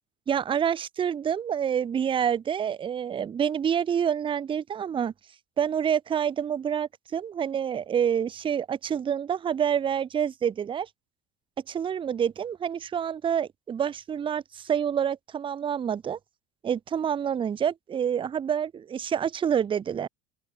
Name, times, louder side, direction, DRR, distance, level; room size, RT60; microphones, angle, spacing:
voice 1, 0.3-5.1 5.6-10.9 11.7-16.2 16.6-20.1, right 8 dB, 15° right, 0.4 m, -27 dB
open air
hypercardioid pair, 85°, 33 cm